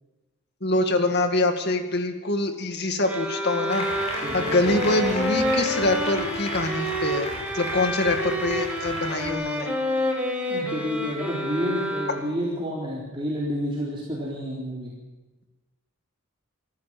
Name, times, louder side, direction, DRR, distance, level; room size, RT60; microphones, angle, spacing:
voice 1, 0.6-9.7, left 2 dB, 50° left, 6 dB, 2.1 m, -25 dB
sound 1, 3.0-12.5, equal, 5° right, 2.9 m, -29 dB
Applause, 3.7-9.3, left 1 dB, 30° left, 5.8 m, -34 dB
voice 2, 4.2-4.9 10.5-14.9, equal, 25° right, -5 dB, 3.9 m, -30 dB
26.5 x 13.5 x 7.7 m, 1.2 s
head